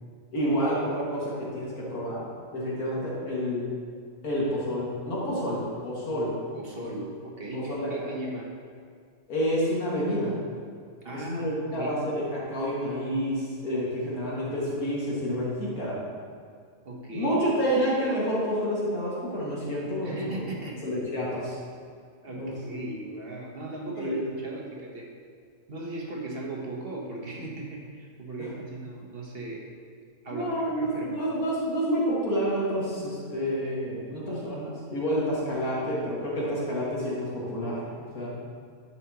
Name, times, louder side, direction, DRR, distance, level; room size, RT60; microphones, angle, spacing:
voice 1, 0.3-2.2 2.5-3.7 4.2-6.3 7.5-8.1 9.3-10.3 11.1-16.0 17.1-20.3 20.8-21.6 22.3-22.5 24.0-24.2 28.4-28.5 30.3-37.8 38.1-38.3, equal, 85° left, -6 dB, 2.4 m, -29 dB
voice 2, 6.5-8.5 11.0-12.1 16.8-17.3 20.0-20.9 22.2-25.1 25.7-29.7 30.2-31.2, right 2 dB, 45° right, -1 dB, 1.1 m, -38 dB
11.0 x 5.7 x 2.9 m, 2.1 s
omnidirectional pair, 1.5 m